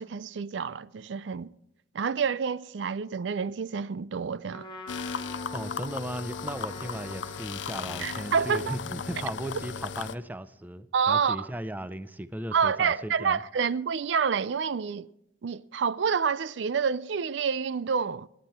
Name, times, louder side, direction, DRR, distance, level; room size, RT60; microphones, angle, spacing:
voice 1, 0.0-1.5 1.9-4.7 8.0-8.8 10.9-11.5 12.5-15.1 15.4-18.3, right 6 dB, 75° right, 0.4 m, -28 dB
Trumpet, 4.5-9.7, left 2 dB, 25° left, 2.2 m, -46 dB
sound 1, 4.9-10.2, left 6 dB, 85° left, 0.5 m, -36 dB
voice 2, 5.5-13.4, right 1 dB, 10° right, 0.5 m, -37 dB
27.0 x 9.5 x 4.3 m
head